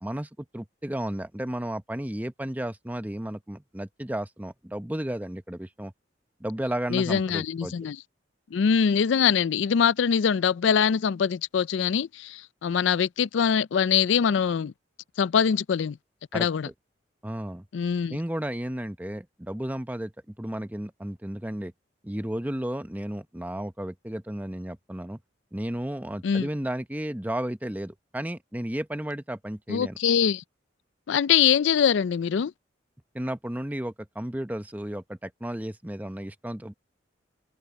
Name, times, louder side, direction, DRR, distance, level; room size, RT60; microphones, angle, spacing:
voice 1, 0.0-5.9 6.4-7.7 16.3-16.5 17.2-17.7 18.1-21.7 22.0-25.2 25.5-30.0 33.1-36.7, right 1 dB, 10° right, 0.8 m, -33 dB
voice 2, 6.9-8.0 8.5-14.7 15.2-16.0 16.3-16.7 17.7-18.2 26.2-26.5 29.7-30.4 31.1-32.5, left 7 dB, 70° left, 0.4 m, -23 dB
head